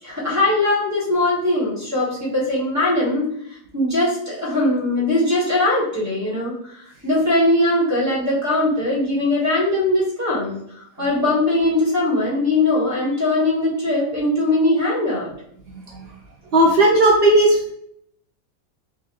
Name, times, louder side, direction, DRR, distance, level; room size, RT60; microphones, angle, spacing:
voice 1, 0.0-15.3, left 2 dB, 10° right, -5 dB, 1.1 m, -21 dB
voice 2, 16.5-17.6, right 1 dB, 80° right, -2 dB, 0.5 m, -14 dB
3.9 x 2.4 x 2.9 m, 0.70 s
omnidirectional pair, 1.7 m